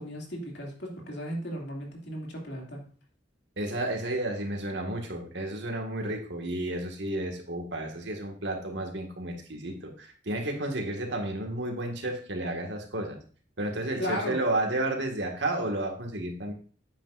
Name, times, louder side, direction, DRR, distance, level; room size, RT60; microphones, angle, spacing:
voice 1, 0.0-2.8 14.0-14.4, equal, 70° left, 0 dB, 2.7 m, -35 dB
voice 2, 3.6-13.2 13.6-16.5, right 1 dB, 70° right, 3 dB, 2.0 m, -32 dB
9.4 x 8.5 x 2.6 m, 0.42 s
head